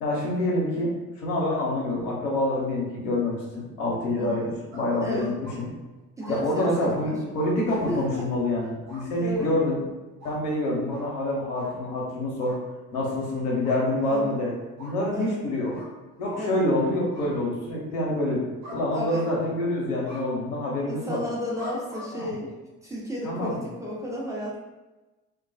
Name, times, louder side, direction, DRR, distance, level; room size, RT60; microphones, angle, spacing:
voice 1, 0.0-5.7 6.3-9.8 10.2-12.6 12.9-14.5 14.8-15.7 16.2-18.4 18.7-21.2 22.1-22.3 23.2-23.6, left 1 dB, 75° left, -3 dB, 0.8 m, -27 dB
voice 2, 4.2-4.5 5.0-5.3 6.2-7.2 7.9-8.3 9.1-9.5 14.1-14.3 15.1-15.4 16.3-16.7 18.9-19.2 20.9-22.5 22.8-24.6, equal, 5° right, -5 dB, 0.7 m, -33 dB
sound 1, 4.7-5.6 6.2-6.7 7.4-8.0 8.9-9.0 9.3-9.5 10.2-10.4 10.9-11.1 11.5-11.7 12.4-12.6 13.6-14.2 14.8-15.0 15.7-15.9 16.3-16.5 17.1-17.3 18.6-18.8 19.1-19.6 20.0-20.2 21.6-22.1, left 1 dB, 85° right, 0.9 m, -43 dB
2.2 x 2.2 x 2.5 m, 1.1 s
figure-of-eight pair, 50°, 45 cm